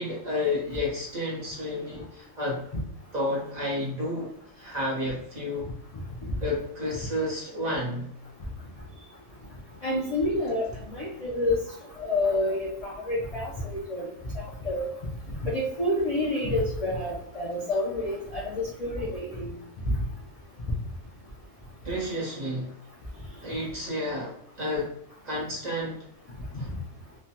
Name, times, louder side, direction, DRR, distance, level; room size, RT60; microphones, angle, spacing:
voice 1, 0.0-2.6 3.1-5.7 6.4-8.1 21.8-22.7 23.4-24.9 25.2-26.0 26.6-26.7, left 1 dB, 35° right, -5 dB, 0.9 m, -31 dB
voice 2, 9.8-11.6 12.0-14.1 14.3-14.9 15.4-19.5 19.9-20.0, left 1 dB, 70° left, -4 dB, 0.3 m, -28 dB
3.2 x 2.1 x 2.8 m, 0.72 s
omnidirectional pair, 1.5 m